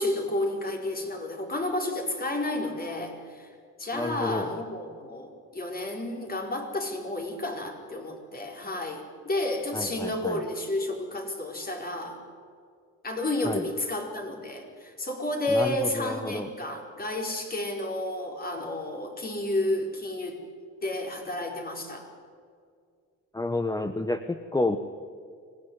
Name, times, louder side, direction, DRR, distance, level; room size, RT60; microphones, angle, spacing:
voice 1, 0.0-3.5 3.8-12.2 13.0-20.4 20.8-22.1, left 1 dB, 30° left, 2 dB, 4.9 m, -31 dB
voice 2, 3.9-4.5 9.7-10.4 13.4-13.6 15.5-16.5 23.3-24.8, left 2 dB, 10° left, 8 dB, 1.1 m, -30 dB
25.0 x 18.0 x 9.6 m, 2.2 s
cardioid pair, 90°, 30 cm